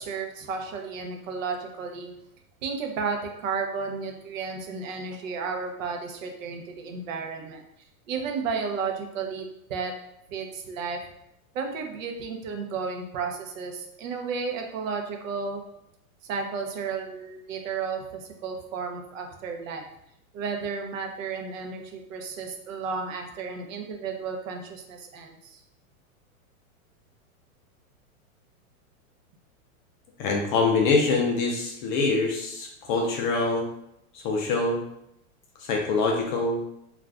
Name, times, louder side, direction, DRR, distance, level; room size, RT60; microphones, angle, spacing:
voice 1, 0.0-2.1 2.6-7.6 8.1-9.9 10.3-11.0 11.5-15.6 16.2-19.9 20.3-25.6, right 5 dB, 65° right, 3 dB, 0.7 m, -33 dB
voice 2, 30.2-33.7 34.2-34.8 35.7-36.6, left 3 dB, 35° left, 0 dB, 0.4 m, -24 dB
2.4 x 2.4 x 3.3 m, 0.78 s
hypercardioid pair, 125°, 43 cm